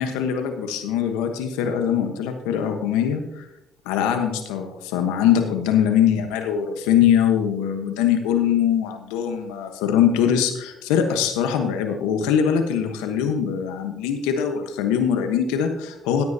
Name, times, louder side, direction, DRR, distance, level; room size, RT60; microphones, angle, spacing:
voice 1, 0.0-3.5 3.8-16.2, left 8 dB, 85° left, 6 dB, 1.2 m, -22 dB
14.0 x 9.6 x 2.8 m, 0.89 s
supercardioid pair, 65°, 0 cm